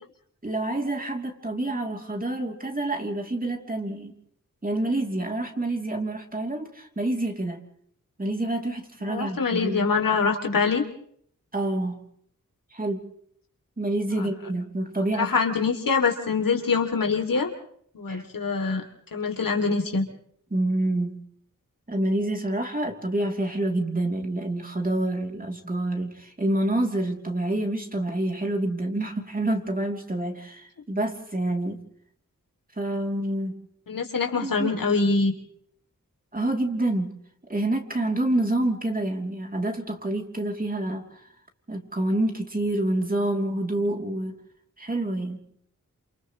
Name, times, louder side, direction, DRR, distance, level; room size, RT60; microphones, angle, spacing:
voice 1, 0.4-4.1 4.6-7.6 8.2-9.8 11.5-12.0 12.7-13.0 13.8-15.4 18.1-18.3 20.5-21.2 21.9-31.8 32.8-33.5 34.4-34.7 36.3-37.2 37.5-41.3 41.7-44.4 44.8-45.4, right 1 dB, 25° right, 2 dB, 3.2 m, -27 dB
voice 2, 9.0-10.8 14.2-14.3 15.2-17.5 17.9-18.8 19.1-20.1 33.9-35.3, left 4 dB, 90° left, 3 dB, 3.0 m, -24 dB
29.0 x 28.0 x 3.2 m, 0.64 s
wide cardioid pair, 90°, 32 cm